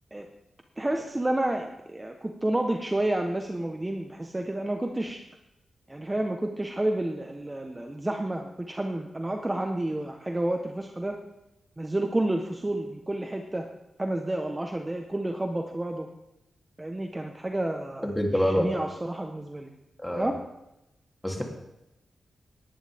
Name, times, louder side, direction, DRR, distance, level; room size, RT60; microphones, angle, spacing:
voice 1, 0.8-5.2 5.9-11.2 11.8-13.6 14.0-16.1 16.8-19.7 20.1-20.4, right 1 dB, 20° right, 4 dB, 1.1 m, -30 dB
voice 2, 18.0-18.9 20.0-20.3 21.2-21.4, equal, 10° left, 0 dB, 3.1 m, -26 dB
19.0 x 10.5 x 3.6 m, 0.91 s
cardioid pair, 70°, 0 cm